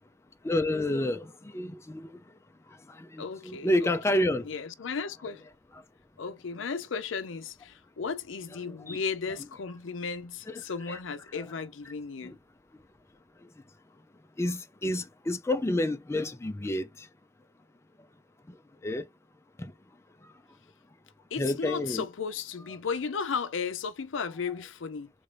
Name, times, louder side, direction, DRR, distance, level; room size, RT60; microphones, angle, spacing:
voice 1, 0.4-2.1 2.9-4.5 8.8-9.0 10.5-10.6 10.9-11.0 12.2-12.4 14.4-17.1 18.8-19.0 19.6-19.7 20.2-20.3 21.4-22.0, left 1 dB, 15° left, 0.4 m, -29 dB
voice 2, 3.2-4.2 4.4-5.5 6.2-12.4 21.3-25.1, left 5 dB, 75° left, 0.5 m, -35 dB
3.8 x 2.6 x 3.2 m
head